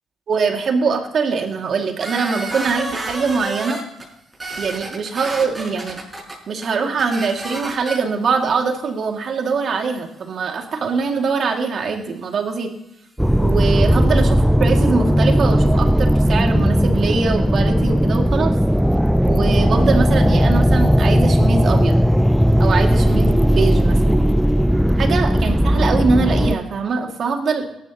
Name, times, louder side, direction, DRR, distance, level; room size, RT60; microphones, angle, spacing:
voice 1, 0.3-3.8 4.6-6.0 6.5-12.7 13.4-18.5 19.2-22.0 22.6-24.2 25.0-27.6, right 5 dB, 55° right, 3 dB, 2.3 m, -22 dB
sound 1, 2.0-4.0 4.3-6.3 6.6-6.7 7.0-8.0, right 2 dB, 20° right, 5.7 m, -30 dB
sound 2, 13.2-26.6, equal, ahead, 0.4 m, -16 dB
18.0 x 12.5 x 3.0 m, 0.85 s
cardioid pair, 90°, 0 cm